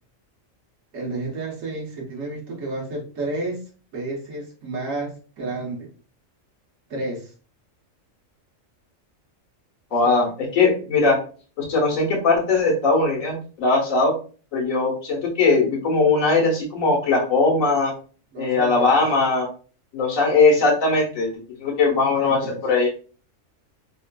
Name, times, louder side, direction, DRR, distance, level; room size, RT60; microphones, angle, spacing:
voice 1, 0.9-3.6 3.9-5.9 6.9-7.3 10.0-10.3 18.3-19.0 21.9-22.6, right 2 dB, 75° right, -2 dB, 1.4 m, -31 dB
voice 2, 9.9-11.2 11.6-14.1 14.5-17.9 18.4-19.5 19.9-21.3 21.6-22.9, left 3 dB, 80° left, -2 dB, 1.4 m, -20 dB
3.6 x 2.4 x 2.2 m, 0.39 s
omnidirectional pair, 1.4 m